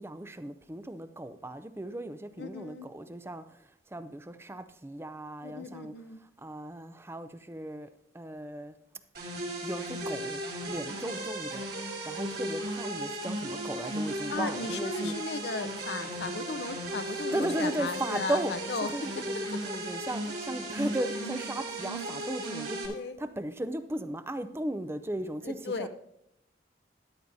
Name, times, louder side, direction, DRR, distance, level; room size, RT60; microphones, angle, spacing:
voice 1, 0.0-5.9 6.4-7.9 8.1-8.7 9.6-10.4 10.7-15.1 17.1-18.5 18.8-25.9, right 1 dB, 15° right, 0.4 m, -36 dB
voice 2, 2.4-2.9 5.4-6.2 11.0-11.1 14.3-19.2 22.9-23.2 25.4-25.9, left 3 dB, 70° left, 0.7 m, -36 dB
sound 1, 9.1-22.9, right 1 dB, 55° right, 2.7 m, -36 dB
13.0 x 11.0 x 2.7 m
head